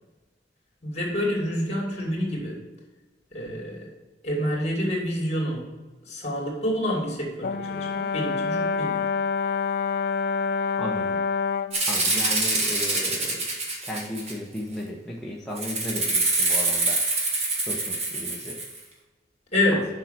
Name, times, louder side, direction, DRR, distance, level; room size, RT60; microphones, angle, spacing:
voice 1, 0.8-2.6 3.3-3.9 4.2-5.7 6.0-9.0 19.5-19.9, left 1 dB, 35° left, -1 dB, 2.7 m, -27 dB
Brass instrument, 7.4-11.8, left 5 dB, 55° left, 0.3 m, -27 dB
voice 2, 10.8-11.2 11.9-13.4 13.8-17.0 17.6-18.6 19.7-19.8, left 1 dB, 5° left, -5 dB, 0.9 m, -35 dB
Rattle (instrument), 11.7-14.6 15.6-18.8, right 2 dB, 35° right, 1.8 m, -25 dB
6.9 x 5.7 x 5.9 m, 1.2 s
head